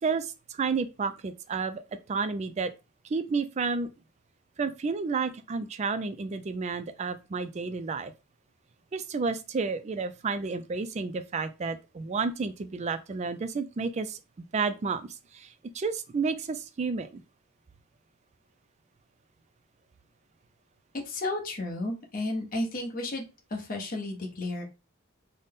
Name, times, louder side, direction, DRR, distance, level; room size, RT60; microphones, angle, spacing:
voice 1, 0.0-1.8 2.1-2.7 3.0-3.9 4.6-8.1 8.9-15.0 15.3-17.2, right 4 dB, 30° right, 0.3 m, -31 dB
voice 2, 21.0-23.2 23.5-24.6, left 2 dB, 40° left, 0.8 m, -32 dB
4.0 x 2.1 x 3.5 m
head